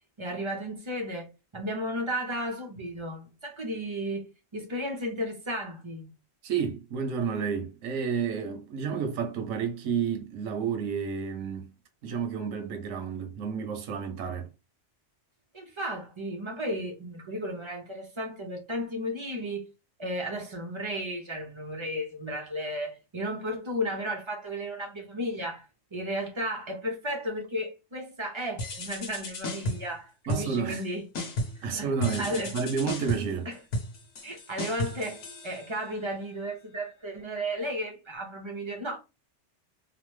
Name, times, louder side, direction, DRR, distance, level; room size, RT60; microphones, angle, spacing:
voice 1, 0.2-6.1 15.5-19.7 20.0-31.1 31.6-31.9 32.2-32.6 33.5-33.6 34.2-39.0, equal, 40° right, 0.4 m, -34 dB
voice 2, 6.4-11.7 12.0-14.5 30.3-30.8 31.6-33.5, right 6 dB, 85° right, 1.1 m, -31 dB
sound 1, 28.6-29.9 30.3-30.9 31.1-31.7 32.0-36.0, left 1 dB, 65° left, 1.1 m, -34 dB
2.9 x 2.0 x 3.1 m
omnidirectional pair, 1.3 m